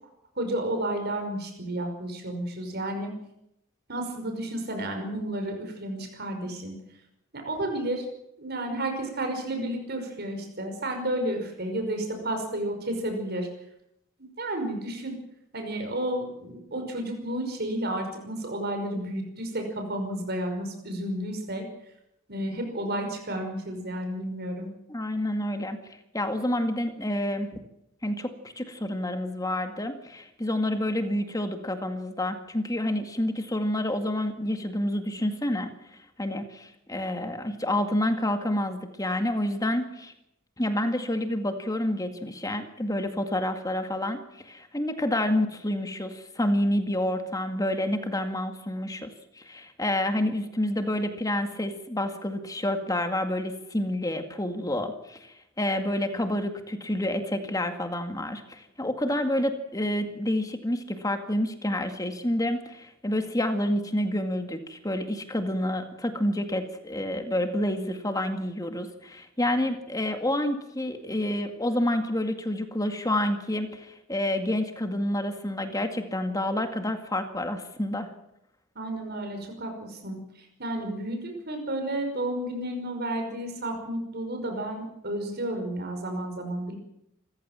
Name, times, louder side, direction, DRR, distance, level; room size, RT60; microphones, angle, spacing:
voice 1, 0.4-3.1 3.9-6.7 7.5-8.1 8.4-13.5 14.4-15.2 15.5-21.6 22.3-24.7 78.8-86.8, right 1 dB, 50° right, 4 dB, 5.5 m, -32 dB
voice 2, 24.9-27.5 28.0-35.7 36.2-40.1 40.6-44.2 44.4-78.1, left 1 dB, 15° left, 7 dB, 2.1 m, -28 dB
27.0 x 15.0 x 7.4 m, 0.82 s
head